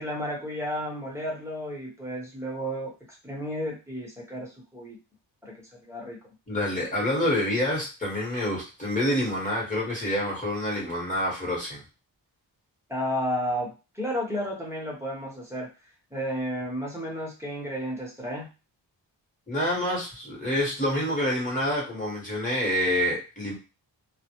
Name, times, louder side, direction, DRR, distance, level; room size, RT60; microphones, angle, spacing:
voice 1, 0.0-2.9 3.2-5.0 5.4-5.5 5.8-6.2 6.8-6.9 12.9-15.7 16.1-18.5, equal, 5° right, -4 dB, 0.8 m, -32 dB
voice 2, 6.5-11.8 19.5-23.5, left 1 dB, 20° left, -4 dB, 1.0 m, -27 dB
2.1 x 2.0 x 2.8 m, 0.30 s
wide cardioid pair, 125°, 43 cm